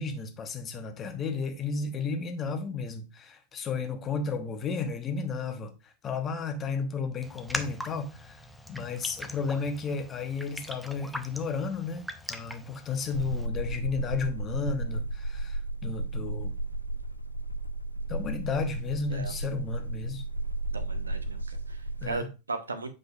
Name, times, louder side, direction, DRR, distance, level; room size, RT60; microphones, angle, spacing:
voice 1, 0.0-8.4 8.7-16.5 18.1-20.2 22.0-22.3, left 5 dB, 25° left, 1.1 m, -33 dB
Raindrop, 7.2-13.5, left 1 dB, ahead, 0.7 m, -41 dB
sound 1, 13.1-22.2, right 2 dB, 85° left, 0.5 m, -34 dB
voice 2, 20.7-22.9, right 3 dB, 75° right, 0.9 m, -37 dB
7.9 x 5.1 x 2.4 m
figure-of-eight pair, 90°, 0 cm